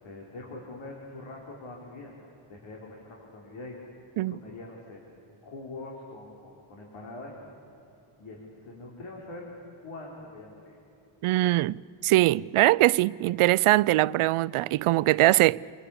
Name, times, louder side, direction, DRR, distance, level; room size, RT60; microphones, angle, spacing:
voice 1, 0.0-3.8 4.3-5.0 5.4-7.6 8.2-9.5 9.8-10.8, left 2 dB, 75° left, 4.5 m, -43 dB
voice 2, 11.2-11.8 12.0-15.6, right 17 dB, 85° right, 0.6 m, -22 dB
28.0 x 21.0 x 8.6 m
cardioid pair, 145°, 49 cm